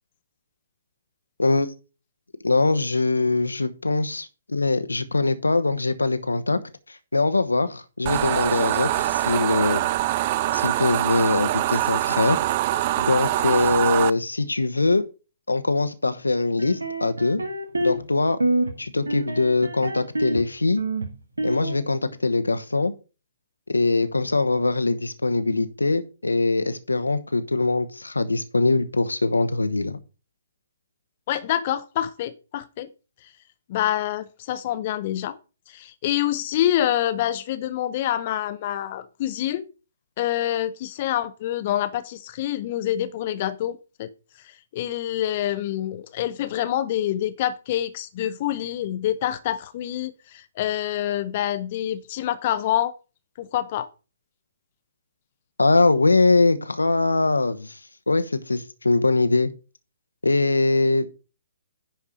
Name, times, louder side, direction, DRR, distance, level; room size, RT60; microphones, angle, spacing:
voice 1, 2.4-6.6 6.9-9.8 10.5-12.4 13.0-15.0 15.5-17.4 17.8-18.4 18.8-20.8 21.4-22.9 23.7-30.0 55.6-57.8 58.1-59.5 60.2-61.1, left 3 dB, 80° left, 1.0 m, -22 dB
sound 1, 8.1-14.1, right 15 dB, 35° right, 0.4 m, -24 dB
sound 2, 16.6-18.1 18.4-18.8 19.1-20.4 20.8-21.8, right 2 dB, 80° right, 1.5 m, -26 dB
voice 2, 31.3-32.9 33.7-35.4 35.7-39.7 40.2-44.1 44.4-52.9 53.4-53.9, left 12 dB, 40° left, 0.7 m, -26 dB
10.5 x 4.8 x 5.1 m
figure-of-eight pair, 125°, 0 cm